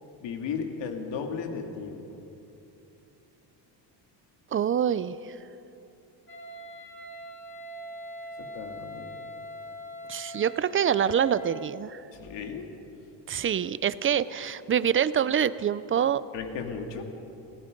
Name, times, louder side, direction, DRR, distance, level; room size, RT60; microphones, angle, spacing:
voice 1, 0.2-2.0 8.5-9.2 12.1-12.7 16.3-17.0, left 6 dB, 80° left, 3 dB, 2.5 m, -35 dB
voice 2, 4.5-5.2 10.1-12.0 13.3-16.2, right 8 dB, 30° right, 16 dB, 0.5 m, -25 dB
Wind instrument woodwind instrument, 6.3-11.6, equal, 25° left, 6.1 m, -42 dB
29.0 x 18.0 x 5.3 m, 2.8 s
cardioid pair, 145°, 43 cm